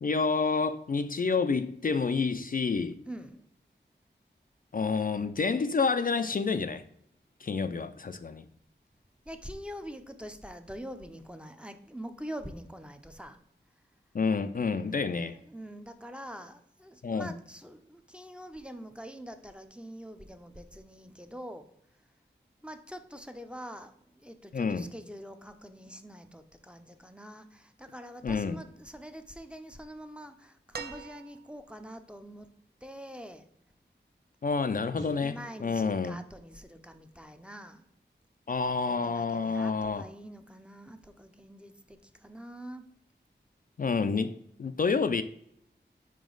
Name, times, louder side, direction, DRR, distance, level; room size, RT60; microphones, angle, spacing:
voice 1, 0.0-3.0 4.7-6.8 7.4-8.5 14.1-15.4 17.0-17.3 24.5-24.9 28.2-28.6 34.4-36.2 38.5-40.1 43.8-45.2, left 4 dB, 45° left, 0.4 m, -29 dB
voice 2, 3.1-3.4 9.3-13.4 15.4-21.7 22.6-32.5 32.8-33.5 35.2-37.9 38.8-42.8, equal, 5° right, 0.6 m, -45 dB
sound 1, 30.7-31.8 33.3-33.4, right 5 dB, 55° right, 0.6 m, -43 dB
sound 2, 34.9-37.3, equal, 40° right, 1.7 m, -51 dB
5.1 x 4.9 x 3.8 m
wide cardioid pair, 60°, 19 cm